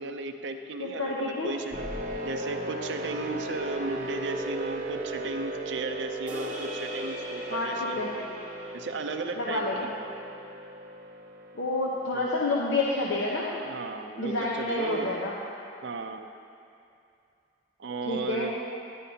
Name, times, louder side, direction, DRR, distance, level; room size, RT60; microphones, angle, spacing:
voice 1, 0.0-1.8 2.2-8.2 8.7-9.9 12.1-12.3 13.7-15.1 15.8-16.3 17.8-18.5, right 3 dB, 75° right, 5 dB, 0.5 m, -35 dB
voice 2, 0.8-1.5 7.5-8.1 9.4-9.9 11.5-13.6 14.2-15.3 18.1-18.5, left 2 dB, 85° left, -5 dB, 0.9 m, -29 dB
sound 1, 1.7-13.0, right 1 dB, 40° right, 0.8 m, -37 dB
sound 2, 6.3-10.7, left 1 dB, 10° right, 1.3 m, -42 dB
11.5 x 11.0 x 2.8 m, 2.5 s
head